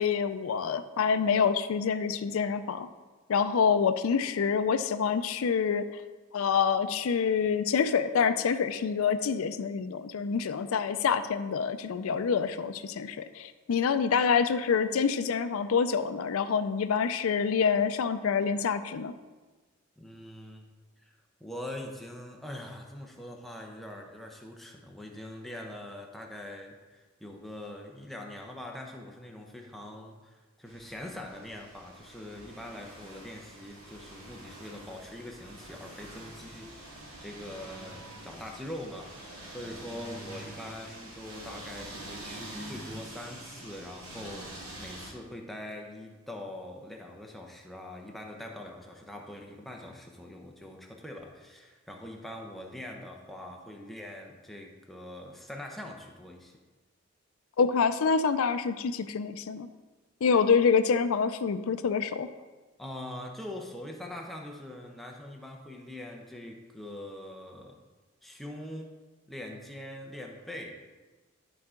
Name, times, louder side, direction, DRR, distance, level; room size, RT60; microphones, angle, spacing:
voice 1, 0.0-2.9 3.3-5.9 6.3-19.1 57.6-59.7 60.2-62.3, left 6 dB, 80° left, 11 dB, 0.4 m, -26 dB
voice 2, 20.0-20.7 21.0-39.2 39.5-56.6 62.8-67.8 68.2-69.0 69.3-70.7, left 1 dB, ahead, 0 dB, 0.7 m, -43 dB
sound 1, 30.6-45.1, right 1 dB, 85° right, 2.0 m, -46 dB
11.5 x 4.8 x 3.7 m, 1.3 s
head